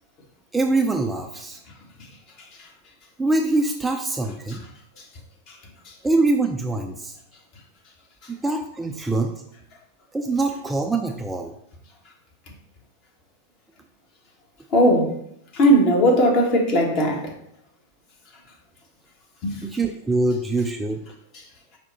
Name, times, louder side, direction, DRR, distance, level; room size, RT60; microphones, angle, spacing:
voice 1, 0.5-1.6 3.2-4.6 6.0-7.2 8.3-9.4 10.1-11.5 19.6-21.0, right 2 dB, 10° right, 0.3 m, -24 dB
voice 2, 14.7-15.1 15.5-17.3 19.4-19.5, equal, 40° left, 0.9 m, -18 dB
4.7 x 2.1 x 4.2 m
figure-of-eight pair, 90°, 0 cm